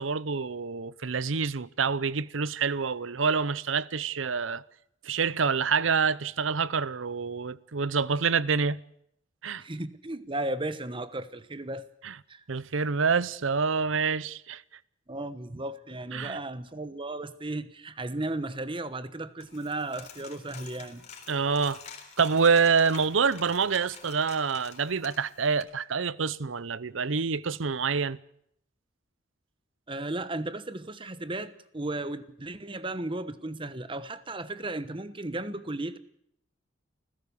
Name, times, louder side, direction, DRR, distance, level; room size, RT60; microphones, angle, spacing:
voice 1, 0.0-4.6 5.0-8.8 9.4-9.6 12.0-12.1 12.5-14.6 16.1-16.4 21.3-21.8 22.2-28.2, right 5 dB, 85° right, 0.8 m, -27 dB
voice 2, 9.6-11.9 12.3-12.4 15.1-21.0 29.9-36.0, right 2 dB, 25° right, 1.1 m, -35 dB
Coin (dropping), 19.4-25.6, left 6 dB, 35° left, 3.6 m, -48 dB
29.0 x 16.0 x 7.0 m
head